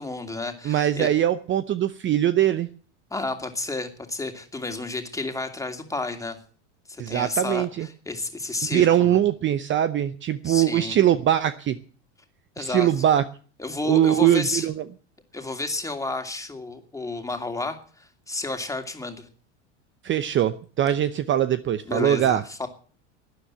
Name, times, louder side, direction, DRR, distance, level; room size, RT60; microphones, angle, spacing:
voice 1, 0.0-1.1 3.1-6.4 6.9-7.7 8.1-9.2 10.4-11.0 12.6-12.9 13.6-14.7 15.3-19.3 21.9-22.7, left 2 dB, 10° left, 5 dB, 2.7 m, -31 dB
voice 2, 0.6-2.7 7.0-7.9 8.6-11.8 12.6-13.2 13.9-14.8 20.0-22.4, right 11 dB, 30° right, 13 dB, 0.8 m, -22 dB
12.5 x 10.0 x 8.9 m, 0.43 s
hypercardioid pair, 100°, 37 cm